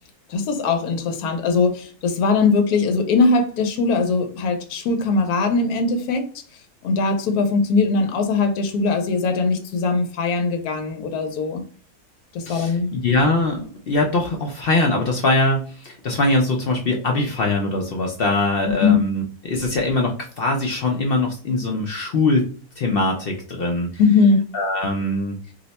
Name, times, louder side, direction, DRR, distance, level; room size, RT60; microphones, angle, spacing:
voice 1, 0.3-6.3 6.8-11.6 12.3-12.9 18.8-19.0 24.0-24.5, left 4 dB, 85° left, 1.1 m, -20 dB
voice 2, 12.5-22.5 22.8-23.9 24.5-25.3, left 2 dB, 65° left, 0.5 m, -22 dB
2.7 x 2.1 x 3.9 m
omnidirectional pair, 1.6 m